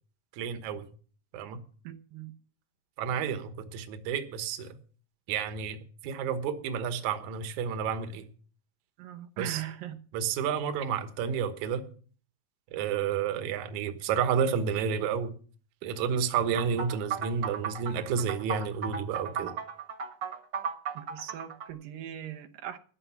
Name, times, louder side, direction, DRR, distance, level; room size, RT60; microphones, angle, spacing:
voice 1, 0.4-0.9 1.3-1.6 3.0-4.7 5.3-8.3 9.4-9.6 10.1-11.9 12.7-15.3 15.8-19.5, right 7 dB, 65° right, 2.4 m, -30 dB
voice 2, 1.8-2.3 9.0-10.0 20.9-22.8, right 11 dB, 85° right, 2.7 m, -40 dB
sound 1, 16.6-21.7, right 6 dB, 45° right, 1.7 m, -35 dB
14.0 x 9.3 x 5.9 m
omnidirectional pair, 3.8 m